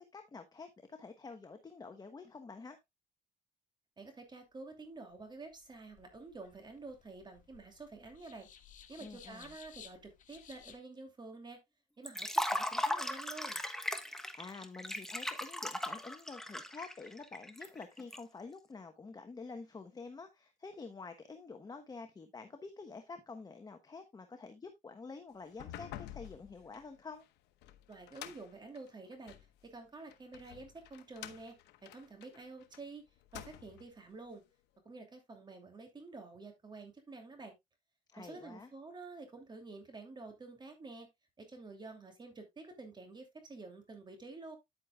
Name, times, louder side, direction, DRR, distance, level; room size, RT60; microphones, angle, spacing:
voice 1, 0.0-2.8 9.0-9.5 14.1-27.2 38.1-38.7, left 4 dB, 25° left, 1.1 m, -48 dB
voice 2, 4.0-8.5 8.9-11.6 12.0-13.6 27.9-29.4 29.6-31.5 31.8-33.0 33.3-34.4 34.8-37.5 38.2-41.1 41.4-44.6, right 3 dB, 25° right, 2.7 m, -49 dB
sound 1, 5.5-10.8, left 8 dB, 50° left, 1.7 m, -57 dB
Liquid, 12.1-18.2, left 1 dB, 5° left, 1.2 m, -37 dB
sound 2, 25.5-29.5 30.1-32.8 33.2-33.9, left 13 dB, 85° left, 0.9 m, -50 dB
9.7 x 8.6 x 2.3 m
cardioid pair, 110°, 17 cm